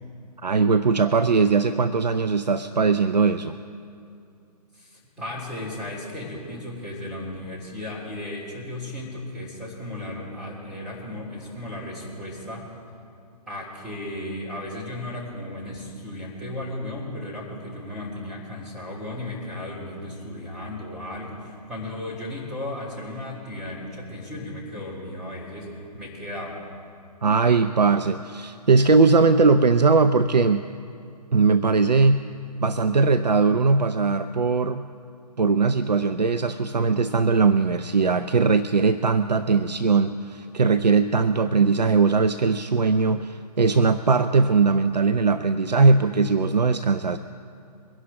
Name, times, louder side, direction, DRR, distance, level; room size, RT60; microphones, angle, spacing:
voice 1, 0.4-3.6 27.2-30.6 31.3-32.3 32.6-34.9 35.4-47.2, right 4 dB, 80° right, 10 dB, 0.5 m, -20 dB
voice 2, 4.7-12.6 13.5-26.6, left 1 dB, 5° right, -7 dB, 3.4 m, -35 dB
23.0 x 11.0 x 3.7 m, 2.5 s
figure-of-eight pair, 135°, 21 cm